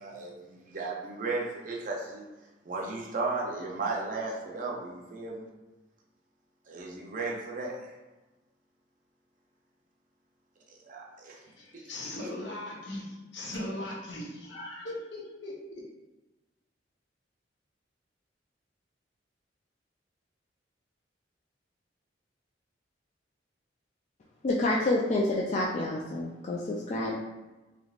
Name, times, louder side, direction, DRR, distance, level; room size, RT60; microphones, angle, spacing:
voice 1, 0.0-2.3 2.6-5.5 6.7-7.9 10.7-11.4 11.7-11.8, right 3 dB, 45° right, -1 dB, 0.6 m, -35 dB
voice 2, 11.4-15.8, left 1 dB, 70° left, -3 dB, 0.9 m, -39 dB
voice 3, 24.4-27.1, left 2 dB, 40° left, -4 dB, 0.3 m, -28 dB
3.4 x 2.9 x 2.4 m, 1.1 s
head